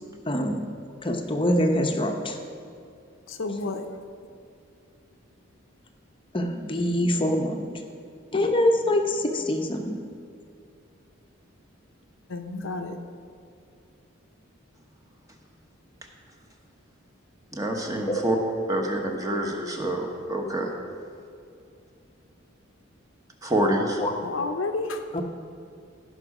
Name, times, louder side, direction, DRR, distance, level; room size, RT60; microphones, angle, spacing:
voice 1, 0.3-0.6 1.0-2.4 6.3-7.8 8.3-10.0 18.1-18.2 24.0-24.1 25.1-25.2, left 1 dB, 25° left, 3 dB, 0.8 m, -24 dB
voice 2, 3.3-3.8 12.3-13.0 24.2-25.0, left 3 dB, 70° left, 6 dB, 0.7 m, -30 dB
voice 3, 17.5-18.4 18.7-20.7 23.4-24.0, right 1 dB, 15° right, 1 dB, 1.1 m, -26 dB
16.0 x 5.5 x 4.9 m, 2.5 s
head